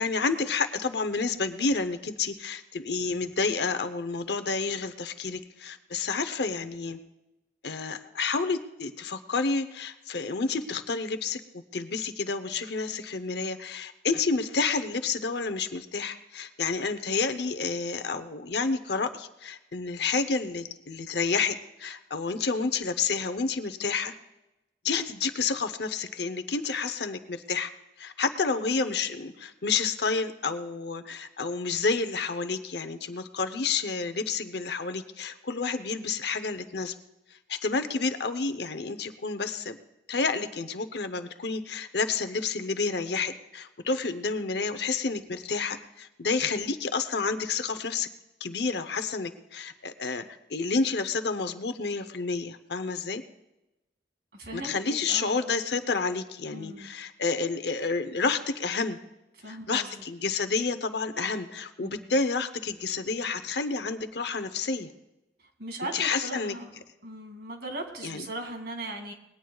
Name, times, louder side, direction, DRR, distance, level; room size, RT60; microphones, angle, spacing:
voice 1, 0.0-7.0 7.6-24.1 24.8-27.7 28.0-36.9 37.5-39.8 40.1-48.1 48.4-50.2 50.5-53.2 54.5-59.0 59.5-64.9 65.9-66.5 68.0-68.2, left 4 dB, 65° left, 9 dB, 0.8 m, -30 dB
voice 2, 54.3-55.3 56.5-56.9 59.4-60.0 61.8-62.1 65.4-66.7 67.0-69.1, right 1 dB, 60° right, 3 dB, 2.4 m, -39 dB
20.5 x 17.0 x 2.4 m, 0.94 s
head